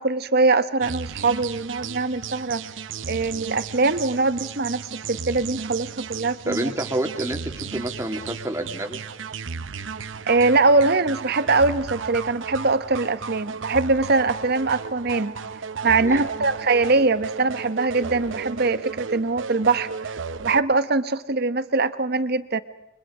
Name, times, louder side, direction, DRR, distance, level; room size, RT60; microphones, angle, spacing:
voice 1, 0.0-2.6 3.1-6.7 10.3-15.3 15.8-22.6, right 3 dB, 55° right, 12 dB, 1.2 m, -22 dB
sound 1, 0.8-20.6, right 5 dB, 80° right, 0.8 m, -34 dB
voice 2, 6.5-9.0 16.0-16.2, right 1 dB, 15° right, 3 dB, 2.5 m, -28 dB
29.5 x 23.5 x 5.0 m, 0.90 s
head